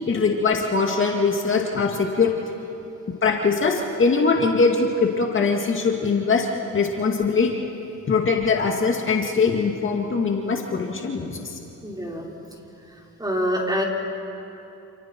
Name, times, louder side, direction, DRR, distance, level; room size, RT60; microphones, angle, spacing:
voice 1, 0.1-2.3 3.2-6.5 6.7-7.5 8.1-11.6, left 4 dB, 40° left, 1 dB, 2.2 m, -22 dB
voice 2, 11.8-12.3 12.8-13.8, equal, 15° right, -2 dB, 4.9 m, -26 dB
29.0 x 28.5 x 4.6 m, 2.9 s
cardioid pair, 90°, 30 cm